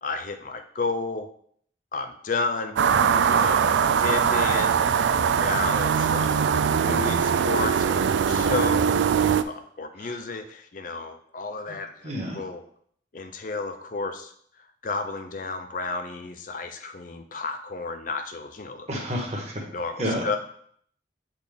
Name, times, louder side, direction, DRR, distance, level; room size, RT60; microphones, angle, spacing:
voice 1, 0.0-1.3 1.9-2.8 3.3-4.8 5.4-6.5 6.8-8.9 9.5-12.6 13.1-14.3 14.8-18.9 19.7-20.4, left 3 dB, 45° left, 7 dB, 0.4 m, -32 dB
sound 1, 2.8-9.4, right 7 dB, 80° right, 0.3 m, -21 dB
voice 2, 2.9-3.2 10.0-10.1 12.0-12.4 18.9-19.6 20.0-20.4, equal, 35° right, -1 dB, 1.4 m, -30 dB
8.2 x 4.1 x 3.5 m, 0.63 s
head